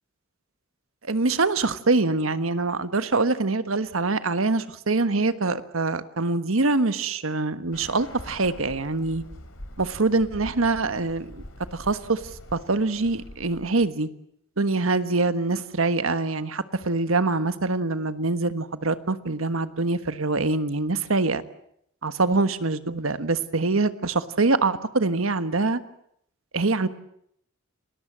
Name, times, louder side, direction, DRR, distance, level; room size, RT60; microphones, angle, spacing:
voice 1, 1.0-9.2 9.8-11.4 11.7-12.2 12.5-14.1 14.6-21.4 22.0-25.8 26.5-26.9, right 3 dB, 80° right, 11 dB, 1.4 m, -24 dB
Bird, 7.7-13.9, left 1 dB, 80° left, 3.3 m, -44 dB
30.0 x 20.5 x 7.5 m, 0.72 s
head